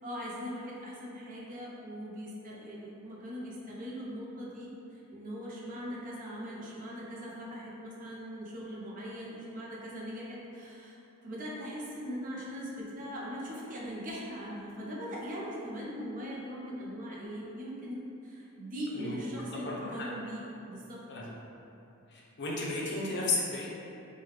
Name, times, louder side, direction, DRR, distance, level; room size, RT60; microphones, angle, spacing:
voice 1, 0.0-11.0 11.2-21.0, equal, 40° right, -5 dB, 0.5 m, -40 dB
voice 2, 19.5-20.1 21.1-21.3 22.1-23.7, left 2 dB, 55° left, -4 dB, 0.5 m, -34 dB
3.2 x 2.2 x 3.1 m, 2.8 s
head